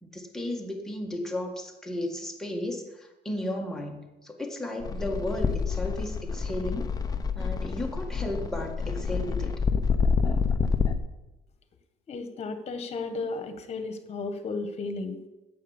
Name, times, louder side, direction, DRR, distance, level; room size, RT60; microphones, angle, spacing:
voice 1, 0.0-6.9 7.3-9.5, left 1 dB, 5° left, 0 dB, 1.8 m, -34 dB
sound 1, 4.8-11.0, left 5 dB, 20° left, 0.8 m, -27 dB
voice 2, 12.1-15.2, left 3 dB, 35° left, 8 dB, 1.6 m, -34 dB
9.3 x 7.8 x 7.4 m, 1.1 s
cardioid pair, 130°, 17 cm